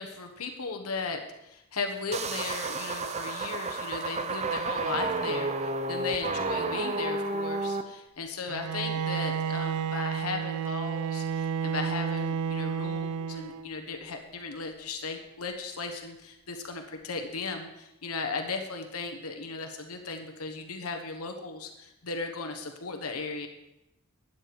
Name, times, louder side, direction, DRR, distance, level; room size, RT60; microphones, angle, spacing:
voice 1, 0.0-23.5, left 4 dB, 85° left, 5 dB, 1.2 m, -36 dB
sound 1, 2.1-7.8, right 3 dB, 30° right, 0.7 m, -31 dB
Bowed string instrument, 8.5-13.8, right 6 dB, 80° right, 0.4 m, -31 dB
13.0 x 8.9 x 4.7 m, 0.88 s
head